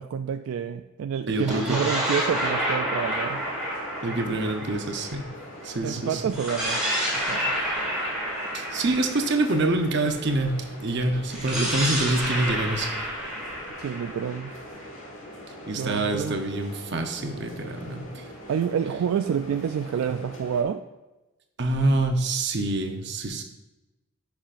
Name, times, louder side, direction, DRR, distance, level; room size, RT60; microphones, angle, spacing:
voice 1, 0.0-3.4 5.8-6.8 7.1-7.5 13.8-14.5 15.8-16.4 18.5-20.8, right 7 dB, 80° right, 8 dB, 0.3 m, -28 dB
sound 1, 1.3-5.7 6.3-10.2 11.3-15.1, equal, 5° right, 2.4 m, -29 dB
voice 2, 1.3-1.8 4.0-5.3 5.6-6.2 7.7-7.8 8.5-13.1 15.7-18.3 21.6-23.4, right 2 dB, 55° right, 4 dB, 0.8 m, -26 dB
sound 2, 3.0-20.6, equal, 65° left, 1.7 m, -43 dB
10.0 x 5.8 x 2.5 m, 1.0 s
head